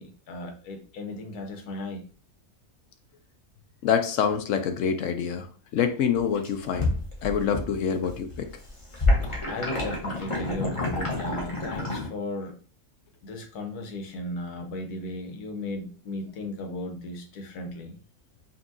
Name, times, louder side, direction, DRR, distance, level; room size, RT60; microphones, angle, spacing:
voice 1, 0.0-2.0 9.4-12.6 13.2-18.0, left 2 dB, 85° left, 4 dB, 1.4 m, -36 dB
voice 2, 3.8-5.5 5.7-6.9 7.2-8.5, left 7 dB, 65° left, 7 dB, 0.9 m, -26 dB
sound 1, 6.2-7.8 8.0-12.1, left 2 dB, 25° left, 0.8 m, -28 dB
5.4 x 2.7 x 2.6 m, 0.40 s
omnidirectional pair, 1.6 m